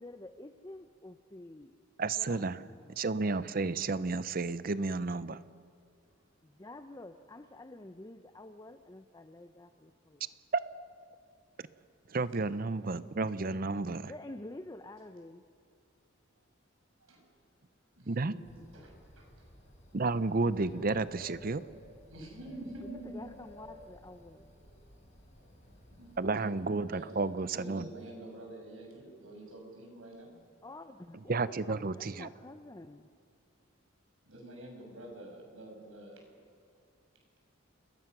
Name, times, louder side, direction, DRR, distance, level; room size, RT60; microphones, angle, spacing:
voice 1, 0.0-1.8 2.2-3.0 6.4-10.3 14.0-15.4 22.3-24.6 30.6-33.1, left 2 dB, 20° left, 9 dB, 0.6 m, -49 dB
voice 2, 2.0-2.6 3.0-5.4 10.5-10.6 12.1-14.1 18.1-18.3 19.9-21.6 26.2-27.9 31.3-32.3, right 3 dB, 45° right, 15 dB, 0.6 m, -31 dB
voice 3, 18.0-19.3 22.1-23.2 24.5-24.7 25.9-30.3 34.2-36.2, right 1 dB, 80° right, 1 dB, 6.1 m, -48 dB
Bird, 18.5-26.2, equal, 35° left, 4.3 m, -55 dB
29.0 x 21.0 x 6.1 m, 2.2 s
head